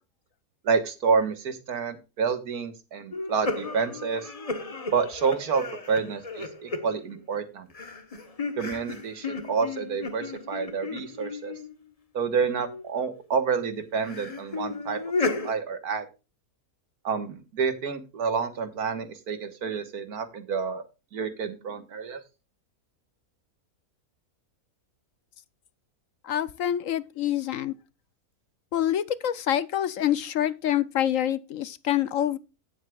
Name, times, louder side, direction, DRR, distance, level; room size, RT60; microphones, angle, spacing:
voice 1, 0.6-4.3 4.9-7.7 8.6-11.5 12.1-15.0 15.4-16.1 17.0-20.8 21.1-22.2, right 5 dB, 80° right, 1.9 m, -28 dB
sound 1, 3.1-7.4 7.7-11.8 12.3-12.9 14.0-15.5, left 3 dB, 25° left, 1.1 m, -34 dB
voice 2, 26.2-27.7 28.7-32.4, left 11 dB, 65° left, 1.0 m, -26 dB
16.5 x 7.8 x 2.4 m
omnidirectional pair, 1.6 m